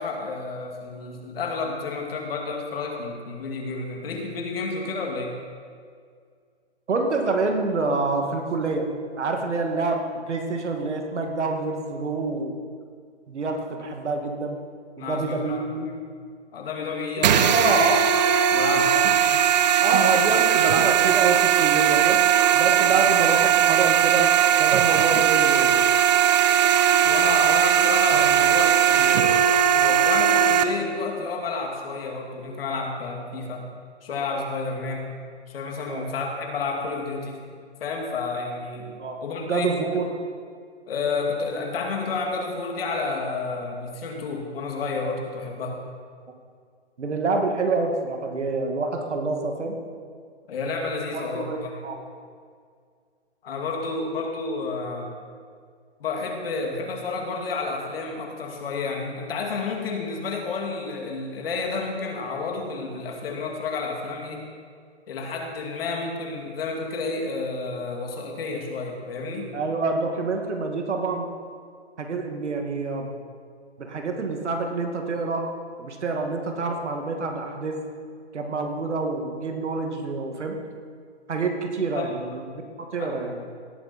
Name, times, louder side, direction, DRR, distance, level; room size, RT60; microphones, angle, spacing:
voice 1, 0.0-5.4 15.0-15.7 16.5-17.5 18.5-19.1 27.0-29.5 29.7-33.7 34.0-35.2 35.5-37.4 37.8-39.8 40.9-45.8 50.5-51.8 53.4-55.1 56.0-64.5 65.1-69.5 81.9-82.1 83.0-83.1, left 4 dB, 55° left, 1 dB, 2.5 m, -30 dB
voice 2, 6.9-8.9 9.2-12.5 13.3-14.6 15.0-15.9 17.2-18.1 19.8-22.2 22.5-24.3 24.6-25.8 35.9-36.1 39.0-40.1 47.0-49.8 51.1-52.0 69.5-71.3 72.0-73.1 73.8-75.5 75.8-77.8 78.3-80.6 81.3-82.5 82.8-83.4, right 3 dB, 85° right, 3 dB, 2.4 m, -27 dB
sound 1, 17.2-30.6, right 9 dB, 40° right, 0.7 m, -19 dB
17.5 x 8.9 x 4.4 m, 2.1 s
hypercardioid pair, 155°, 34 cm